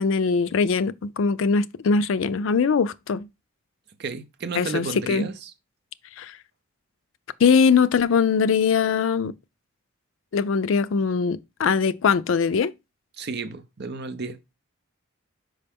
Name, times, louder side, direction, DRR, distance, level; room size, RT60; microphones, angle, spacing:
voice 1, 0.0-3.3 4.6-5.3 6.2-6.3 7.4-9.3 10.3-12.7, left 5 dB, 70° left, 0.4 m, -21 dB
voice 2, 4.0-5.5 13.2-14.4, right 4 dB, 55° right, 0.6 m, -32 dB
5.6 x 5.0 x 3.4 m
head